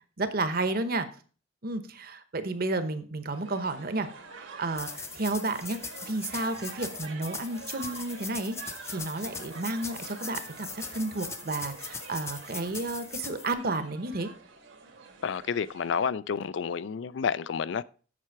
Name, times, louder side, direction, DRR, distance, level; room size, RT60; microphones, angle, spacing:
voice 1, 0.2-1.1 1.6-4.1 4.6-14.3, right 2 dB, 50° right, 0.9 m, -32 dB
sound 1, 3.3-16.1, right 4 dB, 75° right, 1.5 m, -47 dB
sound 2, 4.7-13.5, left 4 dB, 15° left, 0.5 m, -40 dB
voice 2, 15.2-17.8, left 6 dB, 65° left, 0.4 m, -30 dB
7.6 x 6.8 x 4.6 m
head